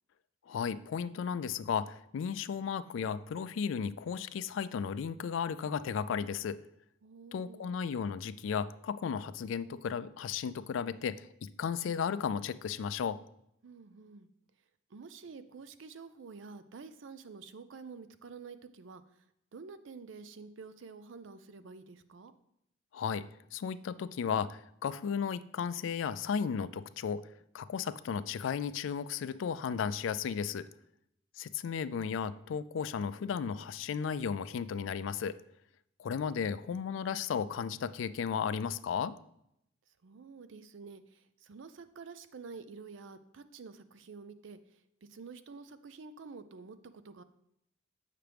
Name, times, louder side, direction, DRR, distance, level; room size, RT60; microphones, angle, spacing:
voice 1, 0.5-6.6 7.3-13.2 22.9-23.3 23.5-27.2 27.5-30.7 31.4-35.4 36.0-39.1, left 6 dB, 80° left, 16 dB, 0.3 m, -34 dB
voice 2, 7.0-7.7 13.6-14.3 14.9-19.0 19.5-22.3 40.0-44.6 45.1-46.8 47.0-47.2, right 4 dB, 75° right, 12 dB, 0.5 m, -49 dB
7.5 x 5.8 x 3.4 m, 0.77 s
head